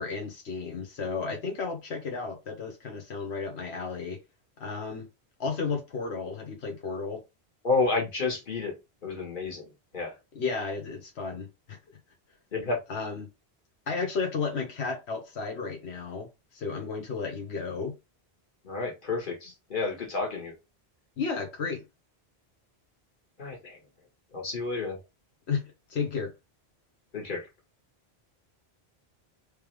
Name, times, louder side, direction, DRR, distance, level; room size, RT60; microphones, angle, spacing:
voice 1, 0.0-4.2 4.6-5.1 5.4-7.2 10.3-11.8 12.9-13.3 13.9-16.3 16.5-17.9 21.2-21.8 25.5-25.6 25.9-26.3, left 4 dB, 85° left, 1.3 m, -33 dB
voice 2, 7.6-8.8 9.0-9.7 9.9-10.2 12.5-12.8 18.6-20.5 23.4-23.8 24.3-25.0 27.1-27.4, left 3 dB, 50° left, 1.6 m, -30 dB
3.3 x 3.3 x 3.2 m
omnidirectional pair, 1.1 m